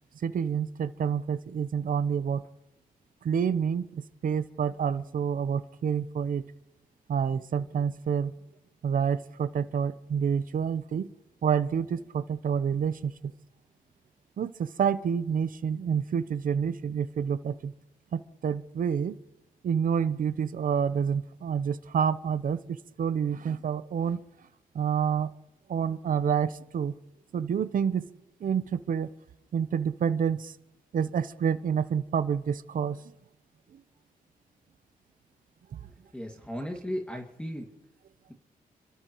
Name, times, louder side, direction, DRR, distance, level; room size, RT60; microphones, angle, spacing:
voice 1, 0.2-2.4 3.2-6.4 7.1-8.3 8.8-11.1 11.4-13.3 14.4-17.7 18.1-19.1 19.6-24.2 24.7-25.3 25.7-26.9 27.3-28.0 28.4-29.1 29.5-30.5 30.9-33.0 33.7-33.8 35.7-35.8, right 7 dB, 65° right, 14 dB, 0.8 m, -28 dB
voice 2, 35.8-37.7, equal, 5° left, 2 dB, 2.2 m, -36 dB
29.5 x 13.5 x 3.1 m, 0.85 s
cardioid pair, 70°, 15 cm